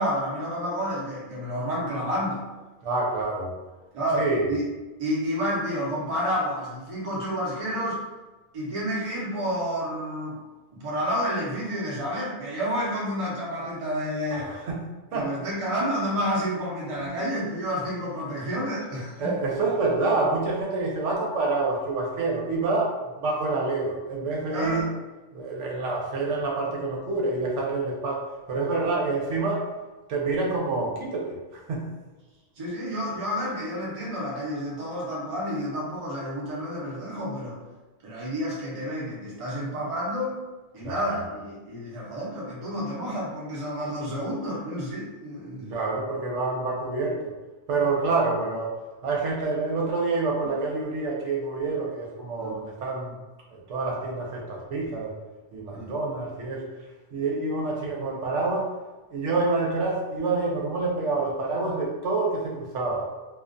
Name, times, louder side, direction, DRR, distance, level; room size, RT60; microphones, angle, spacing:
voice 1, 0.0-2.4 3.9-4.7 5.0-8.0 8.5-10.4 10.8-14.6 15.1-19.4 24.5-24.9 32.6-37.6 38.0-40.4 40.7-45.7 52.4-52.6 55.7-55.9, equal, 35° right, -6 dB, 0.6 m, -30 dB
voice 2, 2.8-3.6 4.2-4.5 14.3-14.8 15.1-15.3 17.0-17.2 19.2-24.9 25.3-29.7 30.1-31.4 31.7-31.8 40.8-41.0 45.7-47.3 47.7-48.7 49.0-53.1 53.5-55.2 55.5-56.7 57.1-58.7 59.1-63.1, right 3 dB, 90° right, -2 dB, 1.0 m, -27 dB
2.4 x 2.2 x 2.5 m, 1.2 s
omnidirectional pair, 1.2 m